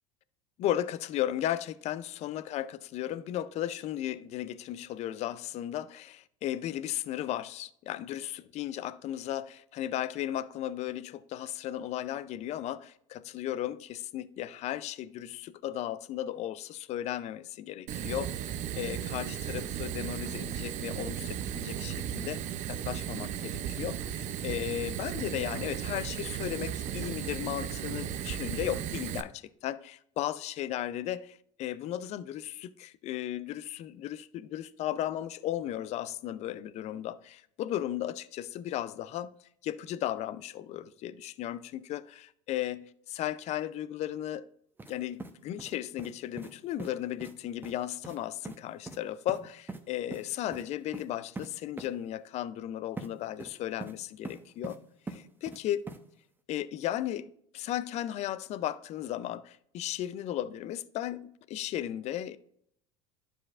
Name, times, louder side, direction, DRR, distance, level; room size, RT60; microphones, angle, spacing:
voice 1, 0.6-22.4 22.7-39.3 39.6-44.5 44.9-54.8 55.1-55.8 56.5-62.4, left 12 dB, 50° left, 0.4 m, -35 dB
Fire, 17.9-29.2, right 10 dB, 50° right, 0.6 m, -35 dB
sound 1, 44.8-44.9 45.2-46.1 46.4-46.5 46.8-46.9 47.2-47.3 47.6-47.7 48.0-48.2 48.4-48.6 48.9-49.0 49.3-49.8 50.1-50.2 50.5-50.6 50.9-51.1 51.4-51.5 51.8-51.9 53.0-53.1 53.4-54.0 54.2-54.8 55.1-55.6 55.9-56.0, right 3 dB, 15° right, 0.8 m, -41 dB
11.5 x 5.0 x 2.4 m
hypercardioid pair, 85°, 15 cm